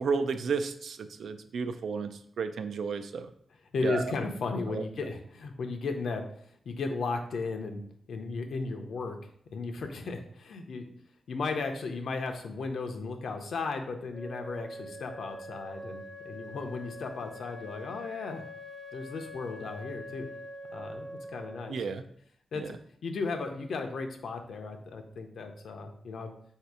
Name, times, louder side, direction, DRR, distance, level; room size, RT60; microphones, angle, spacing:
voice 1, 0.0-3.3 3.8-4.0 4.7-4.8 21.7-22.0 22.5-22.7, right 5 dB, 85° right, 9 dB, 0.3 m, -32 dB
voice 2, 3.7-7.8 8.1-9.2 9.5-10.8 11.3-18.4 18.9-20.3 20.7-21.8 22.5-22.7 23.0-26.3, left 4 dB, 80° left, 4 dB, 0.6 m, -35 dB
Wind instrument woodwind instrument, 14.1-21.8, left 1 dB, 10° left, 0.4 m, -44 dB
4.1 x 2.7 x 4.7 m, 0.66 s
wide cardioid pair, 110°, 0 cm